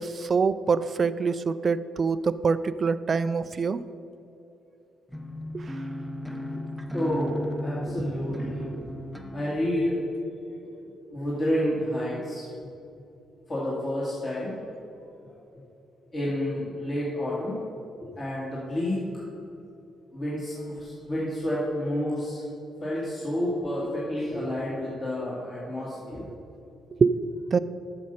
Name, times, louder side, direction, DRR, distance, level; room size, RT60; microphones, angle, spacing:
voice 1, 0.0-3.8 5.5-5.6 27.0-27.1 27.5-27.6, right 5 dB, 40° right, 14 dB, 0.3 m, -25 dB
sound 1, 5.1-9.7, equal, ahead, 0.7 m, -35 dB
voice 2, 6.9-10.0 10.4-10.8 11.1-12.5 13.5-15.4 16.1-17.6 18.0-19.2 20.1-22.4 22.8-26.3, left 1 dB, 30° left, -7 dB, 2.1 m, -30 dB
8.4 x 6.8 x 5.4 m, 2.7 s
cardioid pair, 90°, 0 cm